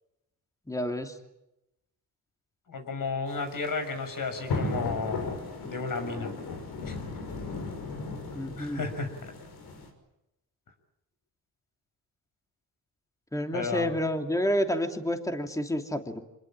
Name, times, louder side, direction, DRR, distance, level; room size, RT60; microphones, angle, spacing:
voice 1, 0.7-1.2 8.3-8.8 13.3-16.2, equal, 10° left, 5 dB, 2.9 m, -29 dB
voice 2, 2.7-6.3 6.8-6.9 8.6-9.1 13.5-13.9, left 4 dB, 60° left, 6 dB, 6.3 m, -33 dB
sound 1, 3.3-9.9, left 3 dB, 80° left, 6.0 m, -36 dB
26.0 x 21.0 x 8.9 m, 0.88 s
cardioid pair, 85°, 38 cm